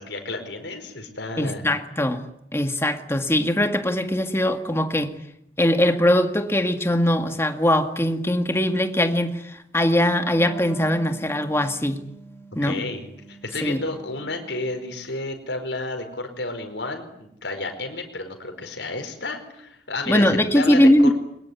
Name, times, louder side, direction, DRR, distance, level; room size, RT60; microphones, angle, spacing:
voice 1, 0.0-1.6 12.6-21.1, left 2 dB, 80° left, 4.9 m, -31 dB
voice 2, 1.4-5.2 5.6-12.0 12.6-12.8 13.6-13.8 20.1-21.1, left 1 dB, 15° left, 1.9 m, -21 dB
Wind instrument woodwind instrument, 9.9-15.0, right 2 dB, ahead, 4.9 m, -44 dB
23.0 x 21.0 x 9.6 m
head